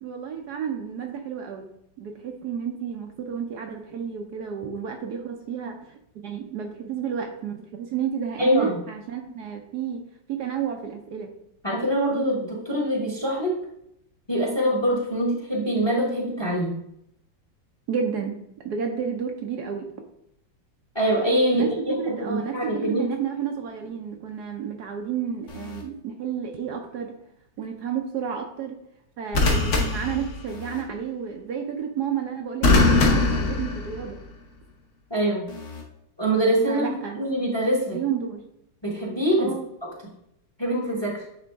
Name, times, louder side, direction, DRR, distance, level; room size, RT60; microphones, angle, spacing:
voice 1, 0.0-1.7 2.0-10.0 10.3-11.3 17.9-18.4 18.6-19.9 21.5-27.1 27.6-28.8 29.2-34.2 36.7-37.3 37.9-38.4 39.4-39.6, right 7 dB, 65° right, 3 dB, 1.1 m, -31 dB
voice 2, 8.4-8.8 11.6-13.5 14.3-16.7 20.9-23.1 35.1-35.5 36.2-38.0 38.8-39.5 40.6-41.2, right 1 dB, 15° left, -1 dB, 1.0 m, -24 dB
sound 1, 25.5-25.8 29.3-30.8 32.6-34.3 35.5-35.8, left 3 dB, 45° left, 1.2 m, -22 dB
9.0 x 3.7 x 3.5 m, 0.76 s
omnidirectional pair, 2.0 m